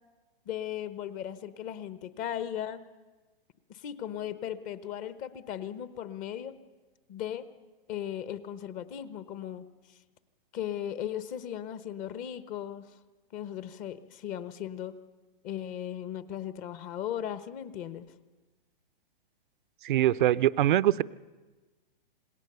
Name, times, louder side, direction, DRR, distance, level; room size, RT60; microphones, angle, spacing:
voice 1, 0.5-2.8 3.7-6.5 7.1-7.5 7.9-9.6 10.5-12.9 13.3-14.9 15.4-18.1, left 10 dB, 30° left, 14 dB, 1.1 m, -37 dB
voice 2, 19.8-21.0, right 13 dB, 55° right, 16 dB, 0.6 m, -23 dB
27.0 x 20.5 x 6.9 m, 1.3 s
hypercardioid pair, 130°, 29 cm